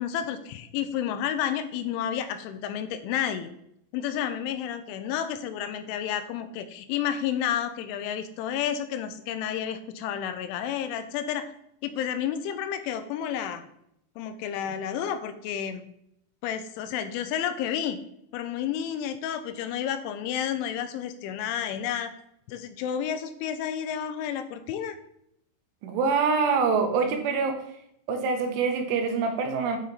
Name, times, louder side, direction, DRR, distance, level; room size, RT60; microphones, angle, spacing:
voice 1, 0.0-3.5 3.9-11.5 11.8-13.7 14.2-15.8 16.4-18.0 18.3-22.1 22.5-25.0, left 9 dB, 85° left, 10 dB, 2.9 m, -31 dB
voice 2, 25.8-27.6 28.1-29.8, right 5 dB, 80° right, 5 dB, 3.3 m, -25 dB
9.1 x 5.8 x 4.0 m, 0.75 s
omnidirectional pair, 5.6 m